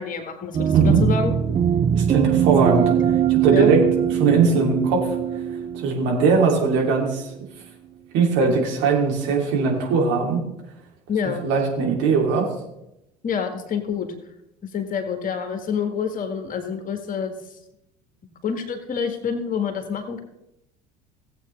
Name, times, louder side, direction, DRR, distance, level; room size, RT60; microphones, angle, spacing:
voice 1, 0.0-1.6 3.5-3.7 11.1-11.4 13.2-14.1 14.6-17.3 18.4-20.2, left 6 dB, 40° left, 6 dB, 1.6 m, -27 dB
sound 1, 0.5-7.1, right 9 dB, 25° right, 0.4 m, -22 dB
voice 2, 0.7-1.0 1.9-2.9 3.3-3.8 4.1-5.2 5.7-7.3 8.1-10.4 11.4-12.5, right 5 dB, 60° right, 0 dB, 2.8 m, -20 dB
17.0 x 8.0 x 3.3 m, 0.87 s
figure-of-eight pair, 65°, 21 cm